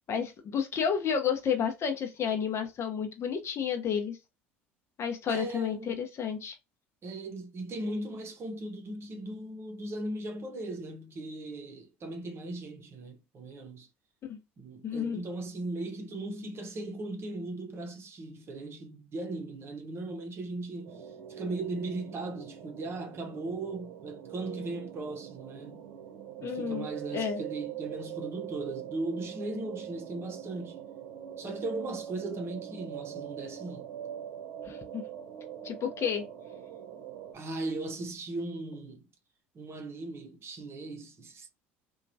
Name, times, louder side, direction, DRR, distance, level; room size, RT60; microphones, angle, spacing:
voice 1, 0.1-4.2 5.0-6.6 14.2-14.4 14.8-15.2 26.4-26.9 27.1-27.4 34.6-35.0 35.6-36.2, left 7 dB, 45° left, 0.7 m, -31 dB
voice 2, 5.3-6.0 7.0-13.9 14.6-25.9 26.4-30.8 31.4-33.9 37.3-39.1 39.5-41.5, right 2 dB, 40° right, 0.8 m, -38 dB
sound 1, 20.8-37.3, right 10 dB, 70° right, 0.8 m, -43 dB
2.9 x 2.3 x 2.6 m
hypercardioid pair, 65°, 7 cm